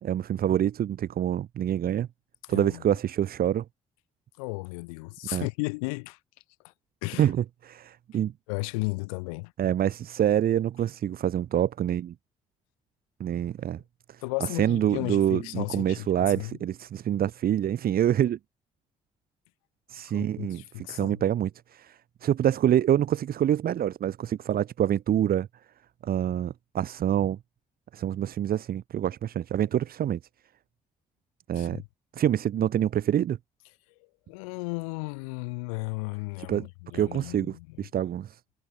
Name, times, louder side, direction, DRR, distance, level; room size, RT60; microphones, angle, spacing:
voice 1, 0.0-2.1 2.5-3.6 5.3-5.5 7.2-8.3 9.6-12.1 13.2-13.8 14.1-14.2 14.5-18.4 19.9-25.5 26.0-27.4 27.9-30.2 31.5-31.8 32.1-33.4 36.5-36.7 36.9-38.4, right 10 dB, 60° right, 2.2 m, -26 dB
voice 2, 2.5-2.8 4.4-6.2 7.0-7.3 8.5-9.5 14.2-16.5 20.1-21.2 31.6-31.9 34.3-37.8, left 29 dB, 80° left, 2.7 m, -34 dB
hypercardioid pair, 50°, 17 cm